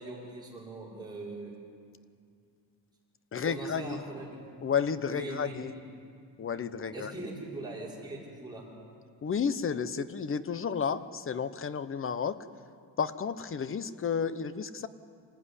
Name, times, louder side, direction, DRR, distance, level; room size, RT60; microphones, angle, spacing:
voice 1, 0.0-1.6 3.4-4.4 5.1-5.8 6.9-8.7, right 2 dB, 10° right, -5 dB, 5.8 m, -41 dB
voice 2, 3.3-4.0 4.6-5.7 6.4-7.1 9.2-12.4 13.0-14.9, left 6 dB, 30° left, 14 dB, 0.8 m, -32 dB
27.0 x 15.0 x 9.9 m, 2.3 s
cardioid pair, 145°, 41 cm